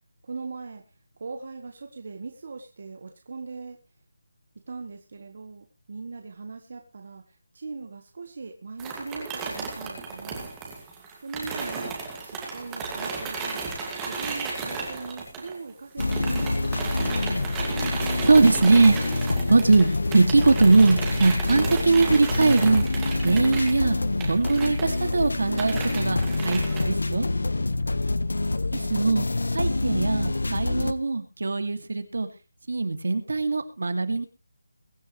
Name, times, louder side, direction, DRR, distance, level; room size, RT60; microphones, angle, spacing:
voice 1, 0.2-0.8 1.2-3.8 4.7-10.5 11.2-11.9 12.2-13.7 14.0-17.1 27.5-27.7, right 4 dB, 35° right, 4 dB, 1.6 m, -40 dB
sound 1, 8.8-15.7 16.0-26.8, right 4 dB, 5° right, 2.3 m, -34 dB
sound 2, 16.0-30.9, left 2 dB, 85° left, 1.5 m, -27 dB
voice 2, 18.2-19.0 19.5-22.9 23.2-24.0 24.2-26.2 26.4-27.3 28.7-29.3 29.5-32.3 32.7-34.3, right 3 dB, 60° right, 8 dB, 2.5 m, -21 dB
22.5 x 9.6 x 3.3 m, 0.31 s
figure-of-eight pair, 180°, 0 cm